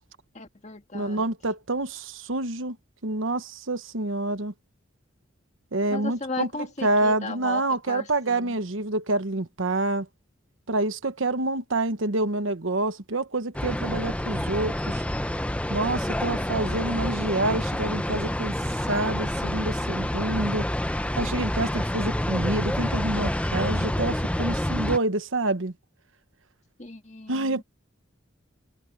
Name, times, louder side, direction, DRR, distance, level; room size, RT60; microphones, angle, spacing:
voice 1, 0.3-1.3 5.9-8.6 16.1-16.9 26.8-27.6, left 3 dB, 35° left, 1.9 m, -37 dB
voice 2, 0.9-2.8 3.0-4.5 5.7-6.5 6.8-10.1 10.7-15.0 15.7-18.5 18.9-20.6 21.2-25.7 27.3-27.6, right 2 dB, 75° right, 1.2 m, -27 dB
sound 1, 13.5-25.0, left 1 dB, 5° left, 0.7 m, -28 dB
head